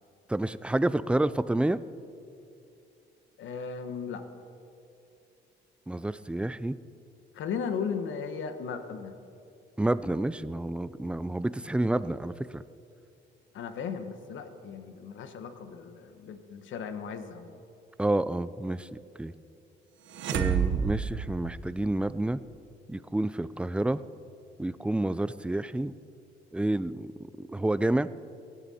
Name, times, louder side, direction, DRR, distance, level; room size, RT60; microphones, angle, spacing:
voice 1, 0.3-1.8 5.9-6.8 9.8-12.6 18.0-19.3 20.3-22.4 22.9-24.0 24.6-25.9 26.5-27.1 27.4-28.1, right 1 dB, 5° right, 16 dB, 0.3 m, -29 dB
voice 2, 3.4-4.2 7.3-9.1 13.5-17.5, left 6 dB, 75° left, 8 dB, 1.2 m, -36 dB
sound 1, 20.1-22.1, right 7 dB, 75° right, 0.9 m, -30 dB
17.0 x 11.5 x 4.2 m, 2.6 s
cardioid pair, 90°, 20 cm